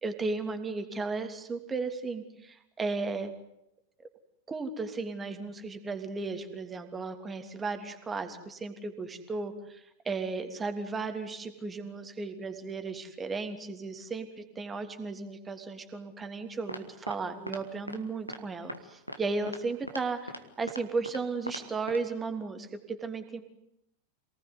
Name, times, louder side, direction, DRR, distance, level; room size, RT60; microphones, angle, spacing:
voice 1, 0.0-3.3 4.0-4.1 4.5-23.4, right 4 dB, 15° right, 7 dB, 3.1 m, -35 dB
sound 1, 16.7-17.2 17.5-17.6 17.9-18.0 18.3-18.4 18.7-18.8 19.1-19.2 19.5-19.6 19.9-20.0 20.3-20.4 20.7-21.2 21.5-21.6 21.9-22.0, equal, 90° left, 2.1 m, -39 dB
27.5 x 19.0 x 9.7 m, 0.81 s
figure-of-eight pair, 90°, 0 cm